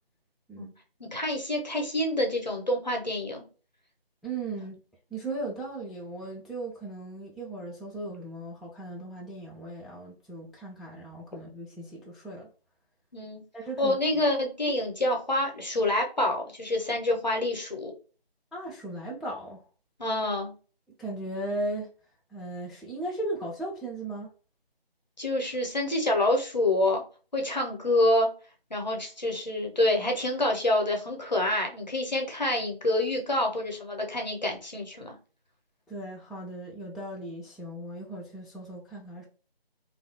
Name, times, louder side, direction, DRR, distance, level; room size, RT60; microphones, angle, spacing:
voice 1, 1.0-3.4 13.1-13.4 13.8-17.9 20.0-20.5 25.2-27.0 27.3-28.3 28.7-35.2, left 1 dB, 45° left, 0.6 m, -27 dB
voice 2, 4.2-4.8 5.1-12.5 13.5-14.0 14.7-14.8 18.5-19.6 21.0-21.9 22.3-24.3 35.9-39.2, right 2 dB, ahead, 0.3 m, -37 dB
2.3 x 2.1 x 2.7 m
figure-of-eight pair, 175°, 31 cm